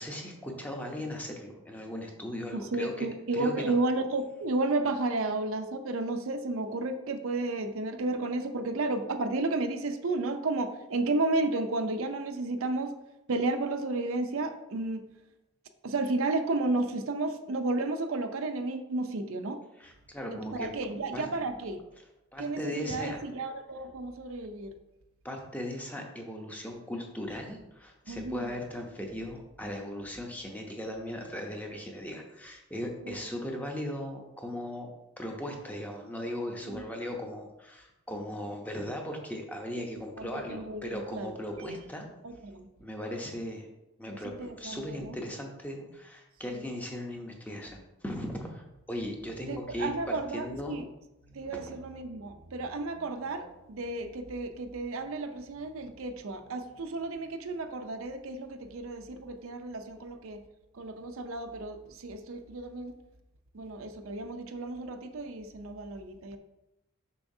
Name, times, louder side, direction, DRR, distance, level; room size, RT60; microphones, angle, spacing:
voice 1, 0.0-3.1 3.3-3.7 19.8-20.7 21.1-21.3 22.0-23.2 25.2-34.9 35.2-42.1 42.8-43.7 44.0-50.8 51.4-51.6, left 1 dB, 5° left, 1 dB, 0.6 m, -38 dB
voice 2, 2.5-13.0 13.3-15.0 15.8-19.6 20.5-21.8 22.4-24.7 28.1-28.5 33.0-33.2 36.7-36.8 40.2-41.3 41.6-41.8 42.2-42.7 44.2-45.2 46.5-46.6 49.5-50.8 51.3-60.4 60.7-62.9 63.5-66.4, right 2 dB, 70° right, 7 dB, 0.5 m, -32 dB
6.9 x 5.6 x 2.7 m, 0.94 s
head